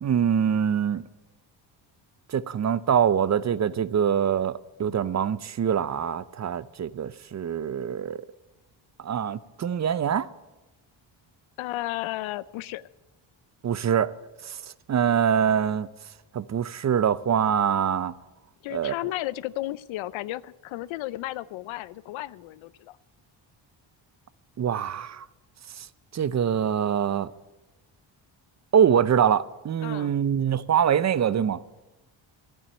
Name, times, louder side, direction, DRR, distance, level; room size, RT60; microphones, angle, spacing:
voice 1, 0.0-1.0 2.3-8.2 9.0-10.3 13.6-14.1 14.4-14.6 14.9-15.9 16.3-18.1 18.7-18.9 24.6-25.3 25.8-25.9 26.1-27.3 28.7-31.6, right 8 dB, 35° right, 0.6 m, -24 dB
voice 2, 11.6-12.9 18.6-23.0 29.8-30.1, left 16 dB, 85° left, 0.6 m, -33 dB
11.0 x 9.0 x 9.5 m
cardioid pair, 90°, 46 cm